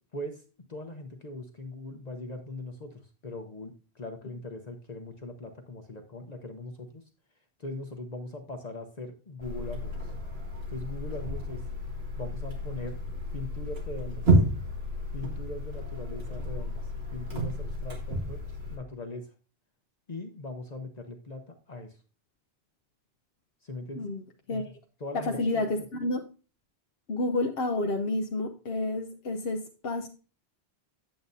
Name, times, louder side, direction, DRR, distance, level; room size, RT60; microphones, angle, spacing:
voice 1, 0.7-7.0 7.6-10.0 10.7-11.6 12.2-13.0 13.3-14.2 15.1-16.7 17.1-18.4 18.7-19.3 20.1-21.9 23.6-24.1 24.5-24.6 25.0-25.7, left 2 dB, 45° left, 5 dB, 0.9 m, -40 dB
sound 1, 9.4-18.8, right 1 dB, 75° right, 2.1 m, -31 dB
voice 2, 25.1-26.2 27.1-30.1, left 2 dB, 70° left, 3 dB, 1.0 m, -30 dB
8.8 x 7.7 x 2.7 m, 0.35 s
omnidirectional pair, 1.0 m